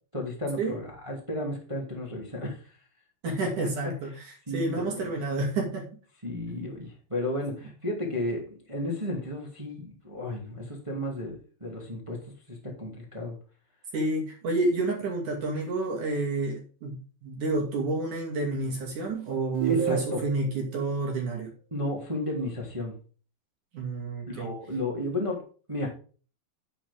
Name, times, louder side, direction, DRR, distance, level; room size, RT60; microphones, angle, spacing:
voice 1, 0.1-2.6 3.4-3.5 4.5-5.1 6.2-12.2 12.5-13.3 19.6-20.2 21.7-22.9 24.3-25.4 25.7-25.9, left 1 dB, 10° right, -1 dB, 1.5 m, -33 dB
voice 2, 3.2-5.9 7.6-7.7 13.9-21.5 23.7-24.5, right 2 dB, 50° right, -1 dB, 3.3 m, -30 dB
sound 1, 19.5-20.6, right 10 dB, 70° right, 3.4 m, -29 dB
9.9 x 8.6 x 3.6 m, 0.39 s
omnidirectional pair, 5.4 m